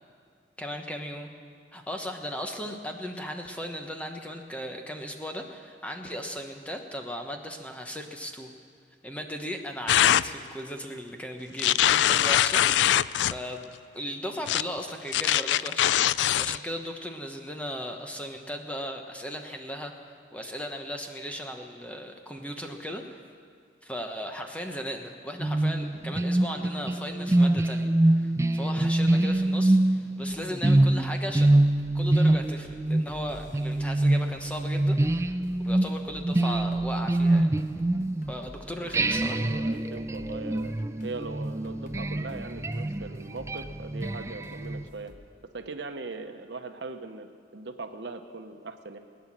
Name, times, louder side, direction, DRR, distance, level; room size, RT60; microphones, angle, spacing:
voice 1, 0.6-1.3 1.7-8.5 9.0-15.9 16.4-19.9 20.3-23.2 23.8-31.6 31.9-35.3 35.6-37.5 38.3-39.4, equal, 5° left, 3 dB, 1.0 m, -37 dB
sound 1, 9.9-10.2 11.6-13.4 14.5-14.6 15.1-16.6, left 11 dB, 80° left, 0.3 m, -22 dB
sound 2, 25.4-38.5 38.9-44.8, right 1 dB, 15° right, 0.3 m, -25 dB
sound 3, 29.3-45.3, equal, 45° left, 1.2 m, -51 dB
voice 2, 38.8-40.8 41.0-45.1 45.5-49.0, right 3 dB, 75° right, 7 dB, 1.0 m, -40 dB
20.5 x 9.6 x 7.4 m, 2.1 s
head